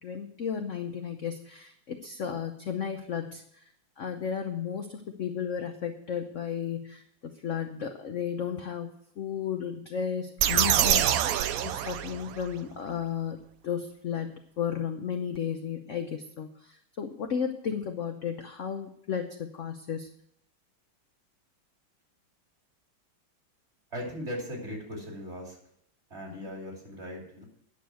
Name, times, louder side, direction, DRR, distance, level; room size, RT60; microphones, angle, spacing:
voice 1, 0.0-3.6 4.0-13.4 13.6-20.1 26.4-26.5, left 7 dB, 55° left, 5 dB, 0.8 m, -34 dB
sound 1, 10.4-12.5, right 10 dB, 85° right, 0.7 m, -25 dB
voice 2, 23.9-25.6 26.1-27.4, equal, 35° right, -1 dB, 3.3 m, -38 dB
9.8 x 7.0 x 7.6 m, 0.71 s
omnidirectional pair, 2.2 m